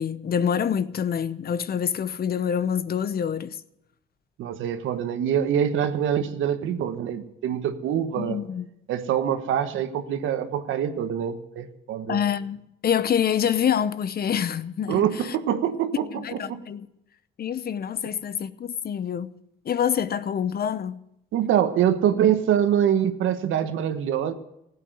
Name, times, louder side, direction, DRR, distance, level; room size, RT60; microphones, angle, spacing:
voice 1, 0.0-3.6 8.1-8.7 12.1-15.4 16.1-16.9 17.4-19.3 19.6-21.0, left 8 dB, 50° left, 0.8 m, -26 dB
voice 2, 4.4-8.4 8.9-12.2 14.9-16.6 21.3-24.3, right 9 dB, 85° right, 1.3 m, -24 dB
15.5 x 8.9 x 9.1 m
cardioid pair, 90°, 20 cm